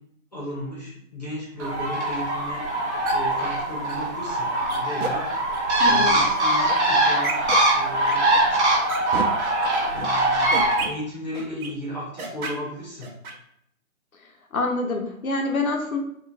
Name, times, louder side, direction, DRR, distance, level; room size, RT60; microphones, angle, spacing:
voice 1, 0.3-2.6 3.1-5.3 5.9-8.5 9.8-10.5 10.8-13.1, equal, 30° left, -6 dB, 0.7 m, -35 dB
Bird, 1.6-10.8, right 1 dB, 55° right, 0.8 m, -22 dB
sound 1, 3.0-3.4 3.9-4.0 4.7-5.1 5.5-5.9 6.4-6.7 7.2-7.6 8.0-8.4 8.9-9.2 9.7-10.1 10.5-10.9 11.3-11.7 12.2-12.5 13.0-13.3, right 4 dB, 90° right, 0.7 m, -31 dB
voice 2, 5.8-6.2 14.5-16.0, left 3 dB, 80° left, 2 dB, 0.7 m, -26 dB
3.0 x 2.3 x 2.4 m, 0.72 s
hypercardioid pair, 175°, 42 cm